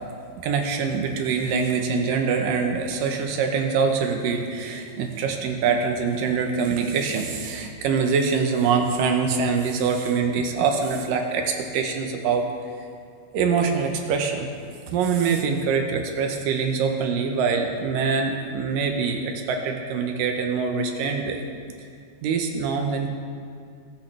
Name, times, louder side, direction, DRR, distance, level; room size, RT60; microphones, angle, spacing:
voice 1, 0.4-12.5 13.3-14.5 14.9-21.4 22.2-23.1, right 5 dB, 75° right, 4 dB, 2.6 m, -24 dB
19.0 x 8.5 x 3.4 m, 2.2 s
omnidirectional pair, 4.1 m